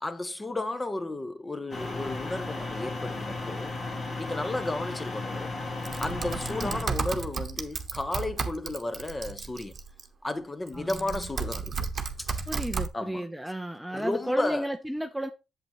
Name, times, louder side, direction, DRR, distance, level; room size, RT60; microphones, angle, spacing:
voice 1, 0.0-3.7 4.2-5.6 6.0-9.8 10.2-11.7 12.2-12.5 12.9-13.3 13.9-14.7, left 2 dB, 20° left, 1.0 m, -33 dB
sound 1, 1.7-6.8, left 2 dB, 45° left, 2.1 m, -35 dB
Typing, 5.8-10.0 10.7-12.9, right 5 dB, 40° right, 1.0 m, -33 dB
voice 2, 6.5-6.9 10.7-11.3 12.5-15.3, right 1 dB, 5° right, 0.6 m, -34 dB
8.1 x 7.5 x 3.1 m
cardioid pair, 90°, 0 cm